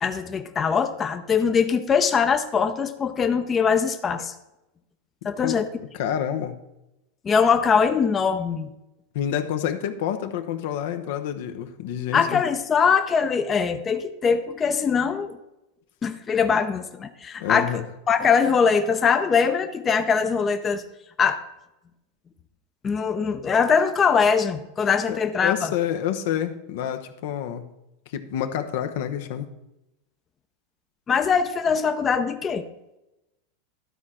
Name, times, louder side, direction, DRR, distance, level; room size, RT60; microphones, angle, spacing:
voice 1, 0.0-4.3 5.2-5.7 7.2-8.7 12.1-15.4 16.0-20.8 21.2-21.4 22.8-25.7 31.1-32.6, left 6 dB, 25° left, 8 dB, 0.7 m, -22 dB
voice 2, 5.2-6.6 9.1-12.4 17.4-17.9 25.1-27.7 28.1-29.5, left 9 dB, 70° left, 8 dB, 0.8 m, -28 dB
12.5 x 4.2 x 6.2 m, 0.93 s
hypercardioid pair, 105°, 0 cm